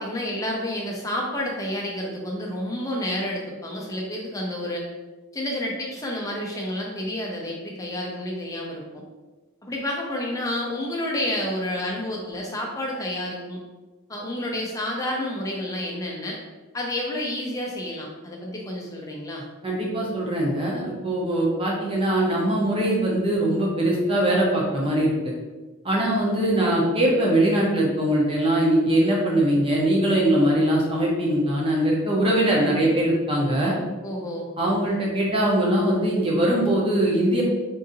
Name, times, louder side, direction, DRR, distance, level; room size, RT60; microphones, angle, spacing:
voice 1, 0.0-4.8 5.3-9.0 9.6-13.6 14.1-16.4 16.7-19.4 34.0-34.5, left 1 dB, 15° left, -1 dB, 0.5 m, -30 dB
voice 2, 19.6-25.3 25.8-33.7 34.6-37.4, right 1 dB, 25° right, -3 dB, 0.7 m, -22 dB
3.7 x 2.6 x 2.6 m, 1.2 s
head